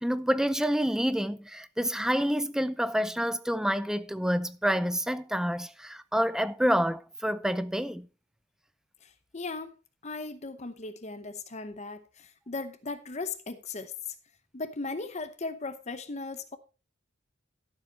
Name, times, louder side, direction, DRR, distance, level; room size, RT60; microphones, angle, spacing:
voice 1, 0.0-8.1, equal, 5° right, 0.5 m, -28 dB
voice 2, 9.0-9.7 10.0-13.9 14.5-16.6, left 3 dB, 35° left, 0.8 m, -37 dB
12.5 x 7.2 x 4.1 m
head